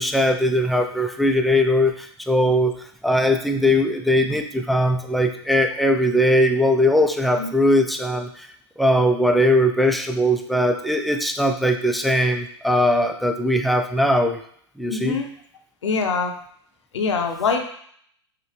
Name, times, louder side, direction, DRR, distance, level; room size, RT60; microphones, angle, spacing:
voice 1, 0.0-2.7 3.0-8.5 8.8-14.4 14.8-15.2, equal, ahead, 5 dB, 0.3 m, -20 dB
voice 2, 14.9-15.3 15.8-16.3 16.9-17.6, left 5 dB, 80° left, 4 dB, 0.7 m, -23 dB
5.8 x 2.1 x 3.2 m, 0.63 s
hypercardioid pair, 110°, 15 cm